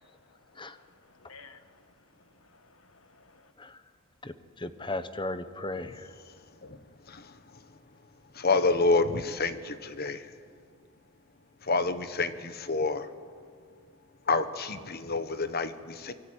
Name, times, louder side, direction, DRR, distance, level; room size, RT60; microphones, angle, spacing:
voice 1, 0.8-3.5, left 4 dB, 65° left, 1.6 m, -56 dB
voice 2, 4.2-6.1, left 2 dB, 20° left, 1.1 m, -36 dB
voice 3, 8.3-10.3 11.6-13.1 14.3-16.1, left 3 dB, 45° left, 1.3 m, -28 dB
25.0 x 23.0 x 9.0 m
head